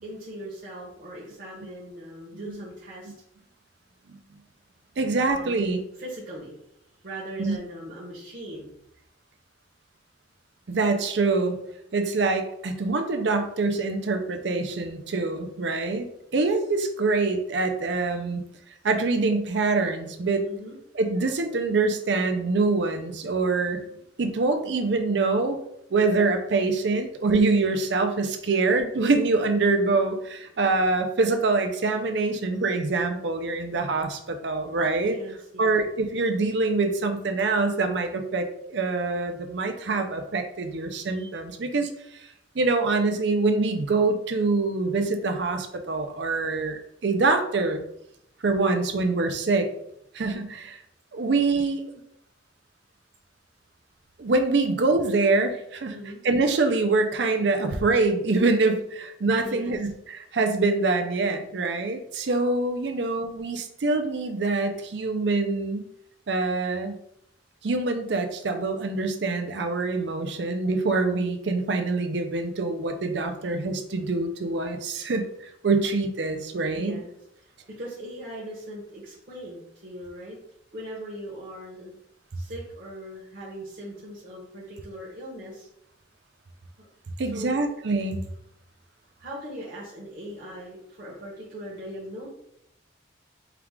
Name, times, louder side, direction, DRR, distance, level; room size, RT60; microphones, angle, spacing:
voice 1, 0.0-3.1 5.2-5.7 6.0-6.6 7.0-8.7 20.5-20.7 35.0-35.8 55.9-56.2 59.4-59.7 76.7-77.4 77.8-80.4 80.7-82.0 82.3-85.7 86.8-86.9 87.3-87.6 89.2-92.3, right 1 dB, 50° right, -6 dB, 1.0 m, -39 dB
voice 2, 5.0-5.8 7.4-7.6 10.7-11.6 11.9-16.1 16.3-18.4 18.8-20.5 20.9-23.8 24.2-25.6 25.9-35.2 35.6-41.9 42.5-47.8 48.4-49.7 50.1-50.8 51.1-51.8 54.2-56.0 56.2-65.9 66.3-67.0 67.6-75.3 75.6-77.0 87.2-88.2, right 3 dB, 65° right, 6 dB, 0.5 m, -25 dB
4.6 x 2.4 x 3.6 m, 0.76 s
head